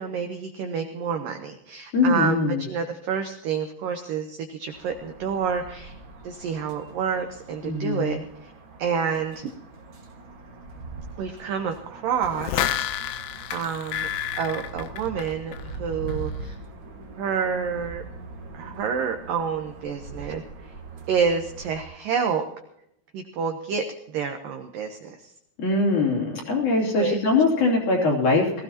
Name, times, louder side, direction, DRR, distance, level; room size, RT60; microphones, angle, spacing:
voice 1, 0.0-2.4 2.7-5.9 6.2-8.5 8.8-9.5 11.2-12.9 13.5-14.1 14.4-16.6 17.2-18.0 18.5-20.7 21.1-22.4 23.1-25.3 27.0-27.2, right 6 dB, 75° right, 5 dB, 2.0 m, -28 dB
voice 2, 1.9-2.6 7.6-8.2 25.6-28.6, left 3 dB, 45° left, -2 dB, 4.3 m, -22 dB
sound 1, 4.7-21.8, right 2 dB, 55° right, 1.3 m, -42 dB
sound 2, 12.2-15.8 16.1-16.2, left 11 dB, 90° left, 3.0 m, -30 dB
20.5 x 15.5 x 2.9 m, 0.76 s
omnidirectional pair, 5.2 m